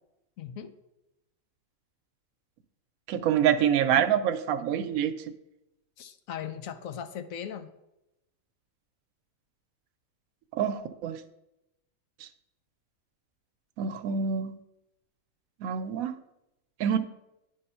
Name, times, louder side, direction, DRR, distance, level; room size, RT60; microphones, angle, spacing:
voice 1, 0.4-0.7 3.9-4.0 6.0-7.7, left 8 dB, 75° left, 9 dB, 1.0 m, -38 dB
voice 2, 3.1-5.3 10.5-11.2 12.2-12.3 13.8-14.6 15.6-16.1 16.8-17.0, right 9 dB, 85° right, 11 dB, 1.0 m, -26 dB
9.4 x 3.5 x 5.5 m, 0.90 s
omnidirectional pair, 1.4 m